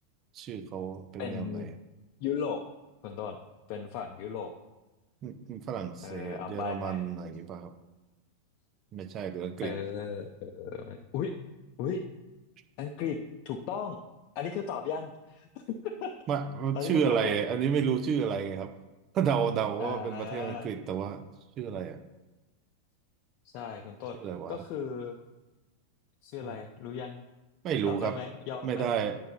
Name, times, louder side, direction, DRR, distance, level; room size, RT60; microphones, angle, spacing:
voice 1, 0.3-1.7 5.2-7.7 8.9-9.7 16.3-18.7 19.1-21.2 21.6-22.0 24.2-24.6 27.6-28.2 28.6-29.2, right 7 dB, 30° right, 9 dB, 0.7 m, -31 dB
voice 2, 1.2-1.7 2.2-2.6 3.0-3.4 3.7-4.5 6.0-7.1 9.6-11.3 11.8-12.0 12.8-13.2 13.4-14.0 14.3-15.5 15.8-16.1 16.5-17.4 19.8-20.7 23.4-25.2 26.2-27.2 27.9-28.9, left 7 dB, 45° left, 3 dB, 0.7 m, -36 dB
9.2 x 5.7 x 5.4 m, 1.1 s
figure-of-eight pair, 90°, 0 cm